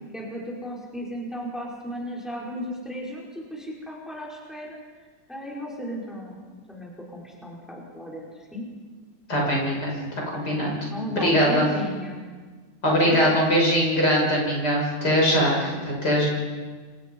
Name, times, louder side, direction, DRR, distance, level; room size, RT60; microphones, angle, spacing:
voice 1, 0.1-4.8 5.3-8.6 10.9-12.2 13.0-13.6 15.5-15.8, left 1 dB, ahead, -3 dB, 5.3 m, -35 dB
voice 2, 9.3-9.9 10.3-10.7 11.2-11.7 12.8-16.3, equal, 50° left, -3 dB, 7.3 m, -21 dB
29.0 x 25.5 x 5.6 m, 1.4 s
omnidirectional pair, 2.2 m